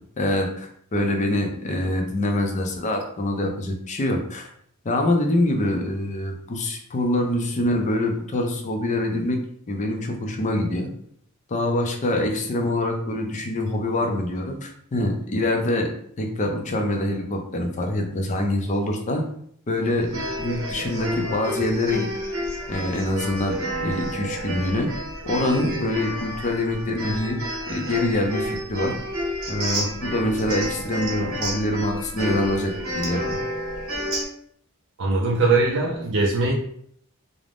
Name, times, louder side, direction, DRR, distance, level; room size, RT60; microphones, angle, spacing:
voice 1, 0.2-4.5 4.8-9.4 9.7-10.9 11.5-15.9 16.2-19.2 19.7-22.1 22.7-24.9 25.3-27.4 27.7-28.9 29.5-33.4, left 1 dB, 35° left, 3 dB, 0.4 m, -25 dB
sound 1, 20.0-34.2, equal, 85° right, 0.9 m, -30 dB
voice 2, 35.0-36.5, right 3 dB, 60° right, -3 dB, 0.4 m, -21 dB
2.5 x 2.0 x 3.3 m, 0.66 s
head